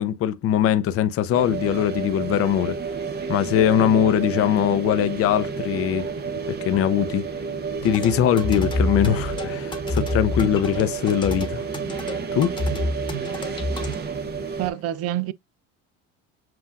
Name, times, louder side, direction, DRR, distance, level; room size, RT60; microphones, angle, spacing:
voice 1, 0.0-2.8 3.3-6.1 6.7-7.2 7.8-11.6 12.3-12.5, left 10 dB, 50° left, 0.6 m, -21 dB
sound 1, 1.3-14.7, right 5 dB, 35° right, 0.9 m, -30 dB
sound 2, 7.8-13.9, left 1 dB, 15° left, 1.1 m, -28 dB
voice 2, 14.6-15.3, right 13 dB, 55° right, 0.5 m, -26 dB
7.5 x 2.5 x 2.4 m
supercardioid pair, 95°, 30 cm